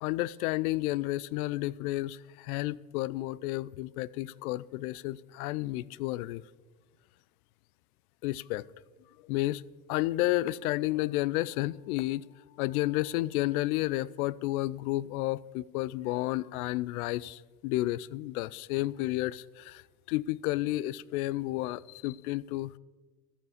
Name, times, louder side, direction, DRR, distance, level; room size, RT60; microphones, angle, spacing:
voice 1, 0.0-6.4 8.2-8.6 9.3-9.6 9.9-12.3 12.6-19.8 20.1-22.7, left 17 dB, 60° left, 0.5 m, -31 dB
13.5 x 5.7 x 7.2 m
hypercardioid pair, 100°, 49 cm